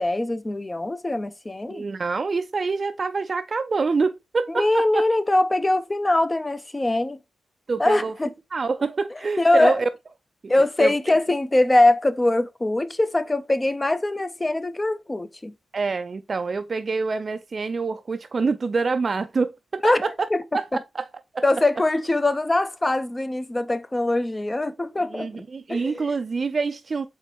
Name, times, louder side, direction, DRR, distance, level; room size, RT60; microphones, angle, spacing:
voice 1, 0.0-1.8 4.6-7.2 7.8-8.3 9.4-9.8 10.5-15.5 19.8-20.0 20.3-20.4 21.4-25.4 25.7-26.1, left 2 dB, 25° left, 0.5 m, -22 dB
voice 2, 1.7-5.0 7.7-8.1 8.5-9.9 10.4-10.5 10.8-11.1 15.7-20.3 20.5-20.7 20.9-21.1 21.3-21.4 25.1-27.1, right 4 dB, 50° right, 0.3 m, -26 dB
4.4 x 3.0 x 3.0 m
supercardioid pair, 50°, 0 cm